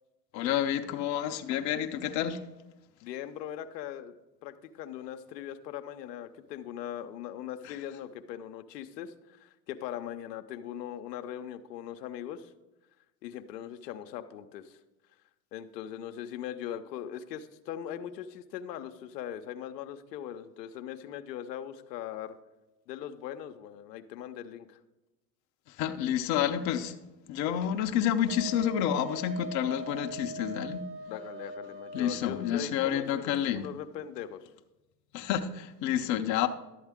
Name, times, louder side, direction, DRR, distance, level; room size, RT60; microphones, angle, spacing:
voice 1, 0.3-2.4 25.8-26.9 27.3-30.9 31.9-33.7 35.1-36.5, left 10 dB, 35° left, 0.7 m, -29 dB
voice 2, 3.0-4.1 4.4-12.5 13.2-14.8 15.5-22.3 22.9-24.8 31.1-34.5, left 10 dB, 75° left, 0.8 m, -40 dB
Wind instrument woodwind instrument, 28.3-32.7, right 3 dB, 25° right, 0.8 m, -42 dB
11.5 x 7.9 x 3.6 m
hypercardioid pair, 105°, 50 cm